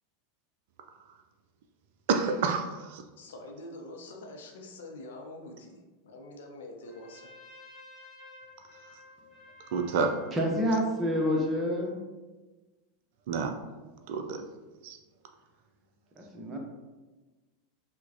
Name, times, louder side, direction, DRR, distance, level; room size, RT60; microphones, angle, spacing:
voice 1, 2.1-3.0 9.7-10.2 13.3-13.6 14.1-14.4 14.8-15.0, right 5 dB, 55° right, 6 dB, 0.3 m, -29 dB
voice 2, 3.2-7.3, left 1 dB, 60° left, 2 dB, 0.6 m, -45 dB
Trumpet, 6.8-11.9, left 2 dB, 20° left, 1.0 m, -53 dB
voice 3, 10.3-12.0 16.2-16.6, equal, 20° right, 0 dB, 0.8 m, -28 dB
5.9 x 2.2 x 2.7 m, 1.2 s
figure-of-eight pair, 85°, 0 cm